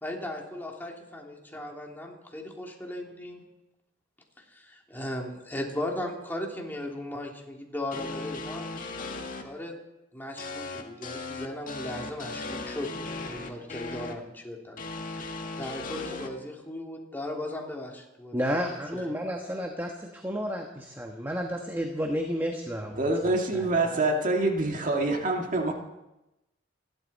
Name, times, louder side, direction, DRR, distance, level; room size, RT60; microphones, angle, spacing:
voice 1, 0.0-3.4 4.4-8.7 9.4-9.7 10.1-14.8 15.1-19.1, left 1 dB, 10° left, 0 dB, 2.7 m, -37 dB
sound 1, 7.9-9.4 10.4-14.1 14.8-16.3, left 3 dB, 45° left, 1.9 m, -37 dB
voice 2, 18.3-23.0 23.2-24.0, equal, 10° right, 2 dB, 1.3 m, -32 dB
voice 3, 23.0-25.7, right 2 dB, 45° right, 2 dB, 2.1 m, -26 dB
28.5 x 12.0 x 4.2 m, 0.96 s
head